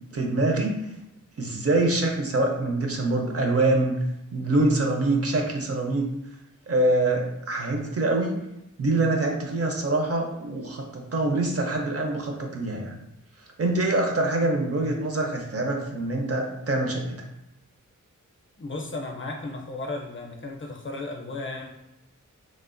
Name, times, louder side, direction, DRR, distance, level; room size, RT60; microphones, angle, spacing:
voice 1, 0.1-0.8 1.4-4.0 4.3-6.0 6.7-8.3 8.8-13.0 13.6-17.3, right 2 dB, 50° right, 2 dB, 0.5 m, -25 dB
voice 2, 18.6-21.7, left 2 dB, 40° left, 1 dB, 0.5 m, -34 dB
3.1 x 2.1 x 2.5 m, 0.88 s
wide cardioid pair, 80°, 32 cm